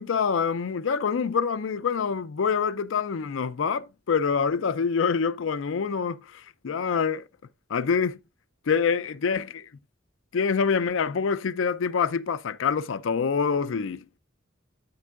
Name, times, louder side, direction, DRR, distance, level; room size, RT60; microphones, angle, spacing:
voice 1, 0.0-7.3 7.7-8.2 8.7-9.7 10.3-14.0, left 6 dB, 80° left, 0.4 m, -26 dB
13.0 x 4.4 x 2.5 m
head